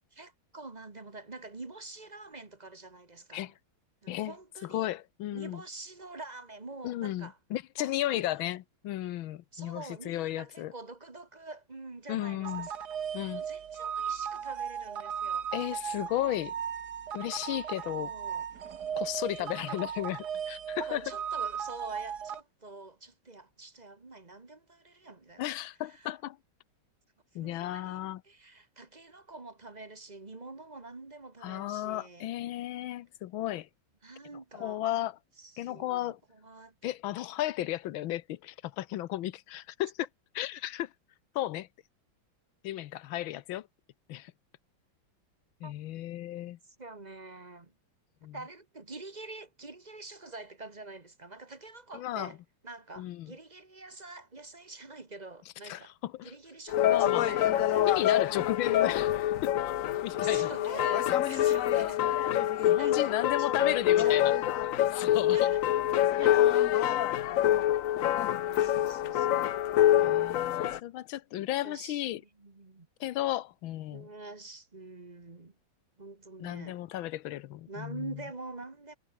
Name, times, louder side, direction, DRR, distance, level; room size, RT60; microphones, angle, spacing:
voice 1, 0.2-3.5 4.0-4.9 5.3-7.4 7.8-8.2 9.5-12.8 13.3-15.5 18.0-18.4 19.4-19.8 20.8-25.5 25.9-26.1 27.4-32.3 34.0-34.8 35.4-36.9 45.6-45.7 46.7-47.7 48.3-52.4 52.6-55.9 56.2-58.4 60.2-62.0 62.5-64.3 65.3-65.6 66.0-66.5 66.8-66.9 68.4-69.5 71.6-72.9 73.9-75.5 76.0-76.8 77.7-79.0, right 3 dB, 20° right, 1.6 m, -46 dB
voice 2, 4.6-5.6 6.8-10.7 12.1-12.7 13.1-13.4 15.5-16.5 17.1-18.1 19.0-21.0 25.4-26.4 27.3-28.2 31.4-33.7 34.5-35.2 35.6-36.2 36.8-40.1 40.3-40.9 41.3-41.7 42.6-43.7 44.1-44.3 45.6-46.6 48.2-48.4 51.9-52.3 53.0-53.3 55.6-56.3 56.8-57.3 57.9-59.1 59.4-59.5 60.0-60.5 62.6-64.4 64.9-65.5 70.0-72.2 73.0-74.1 76.4-78.2, left 14 dB, 85° left, 1.6 m, -34 dB
sound 1, 12.4-22.4, right 8 dB, 55° right, 1.9 m, -36 dB
sound 2, 56.7-70.8, left 12 dB, 70° left, 0.8 m, -26 dB
omnidirectional pair, 2.1 m